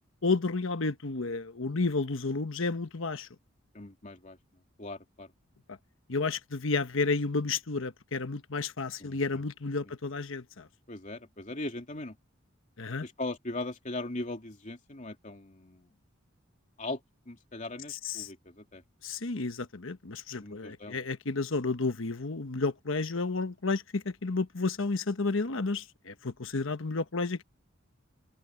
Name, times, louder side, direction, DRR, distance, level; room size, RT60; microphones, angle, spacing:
voice 1, 0.2-3.3 6.1-10.7 12.8-13.0 18.0-18.3 19.0-27.4, left 3 dB, 70° left, 1.2 m, -31 dB
voice 2, 3.7-4.4 4.8-5.3 9.0-9.4 9.8-9.9 10.9-12.2 13.0-15.9 16.8-17.0 17.3-18.8 20.4-21.1, left 2 dB, 35° left, 3.0 m, -39 dB
open air
head